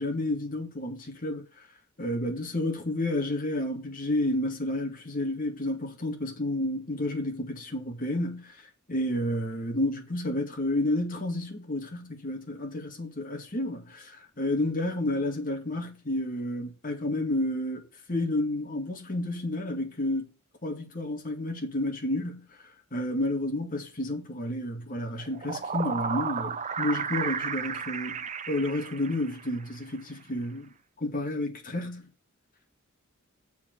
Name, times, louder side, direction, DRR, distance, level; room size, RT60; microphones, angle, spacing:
voice 1, 0.0-1.5 2.0-8.6 8.9-20.2 20.6-22.5 22.9-30.7 31.0-32.1, left 1 dB, 40° left, 2.1 m, -31 dB
sound 1, 25.2-29.6, right 6 dB, 35° right, 0.6 m, -33 dB
7.0 x 4.9 x 6.5 m
head